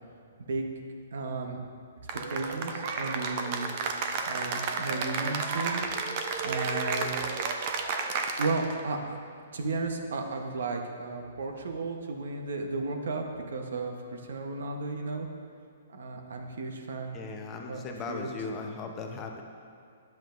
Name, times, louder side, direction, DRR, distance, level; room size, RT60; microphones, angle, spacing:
voice 1, 1.1-1.6 2.3-3.7 4.3-6.1 6.4-7.5 8.4-9.2 9.5-15.3 15.9-17.2 17.7-17.8 18.1-18.3, right 3 dB, 70° right, 3 dB, 1.0 m, -34 dB
Cheering / Applause, 2.1-8.8, right 4 dB, 45° right, 0.6 m, -32 dB
voice 2, 17.1-19.4, left 4 dB, 25° left, 3 dB, 0.8 m, -38 dB
10.5 x 7.6 x 2.5 m, 2.4 s
hypercardioid pair, 135°, 0 cm